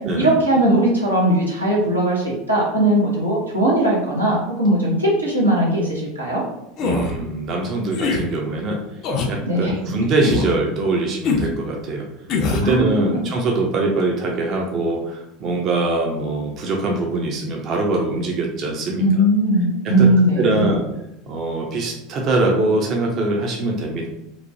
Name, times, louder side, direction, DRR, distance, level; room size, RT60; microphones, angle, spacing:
voice 1, 0.2-6.4 9.5-9.7 12.6-13.2 19.0-20.7, right 1 dB, 90° right, -5 dB, 0.8 m, -19 dB
sound 1, 6.8-7.1 7.9-8.2 9.0-9.3 10.2-10.5 11.2-11.5 12.3-12.7, left 4 dB, 45° left, 0.4 m, -22 dB
voice 2, 6.8-8.8 9.3-12.1 12.5-19.0 19.8-20.1 20.4-20.8 21.3-24.1, right 2 dB, 40° right, 1 dB, 0.5 m, -22 dB
3.0 x 2.1 x 2.6 m, 0.86 s
figure-of-eight pair, 75°, 0 cm